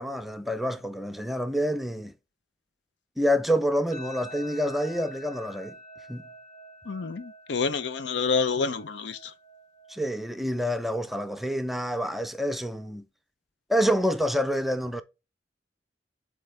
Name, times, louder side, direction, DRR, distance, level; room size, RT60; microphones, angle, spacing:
voice 1, 0.0-2.1 3.2-5.8 6.1-6.3 9.9-13.0 13.7-15.0, equal, ahead, 0.5 m, -27 dB
sound 1, 3.9-13.0, equal, 40° left, 0.7 m, -48 dB
voice 2, 6.9-9.3, left 5 dB, 75° left, 0.6 m, -28 dB
7.8 x 3.8 x 3.3 m
head